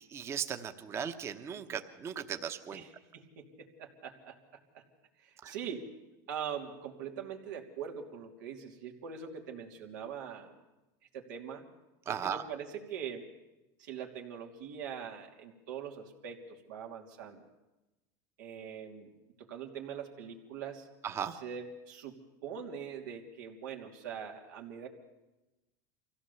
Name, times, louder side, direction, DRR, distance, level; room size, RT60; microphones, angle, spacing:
voice 1, 0.0-2.8 5.4-5.5 12.1-12.4 21.0-21.4, right 8 dB, 30° right, 9 dB, 1.0 m, -37 dB
voice 2, 2.7-4.3 4.7-4.8 5.2-5.9 6.3-10.5 11.1-11.7 12.1-13.2 13.8-16.4 16.7-17.4 18.4-19.1 19.4-20.9 21.3-22.2 22.4-24.9, right 7 dB, 90° right, 1 dB, 3.0 m, -42 dB
24.5 x 16.0 x 7.0 m, 1.0 s
supercardioid pair, 140°, 10 cm